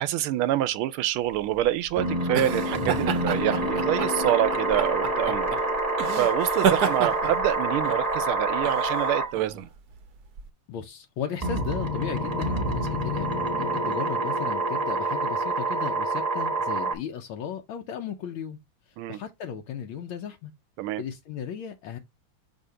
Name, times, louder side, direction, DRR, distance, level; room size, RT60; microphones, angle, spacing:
voice 1, 0.0-5.6 6.2-9.7 19.0-19.2 20.8-21.0, right 13 dB, 90° right, 1.5 m, -26 dB
sound 1, 1.3-10.5, right 8 dB, 65° right, 1.0 m, -31 dB
sound 2, 1.9-9.3 11.4-16.9, right 2 dB, 25° right, 1.0 m, -27 dB
voice 2, 10.7-18.6 19.1-20.5 21.0-22.0, left 8 dB, 75° left, 1.4 m, -35 dB
6.5 x 2.7 x 5.5 m
omnidirectional pair, 2.3 m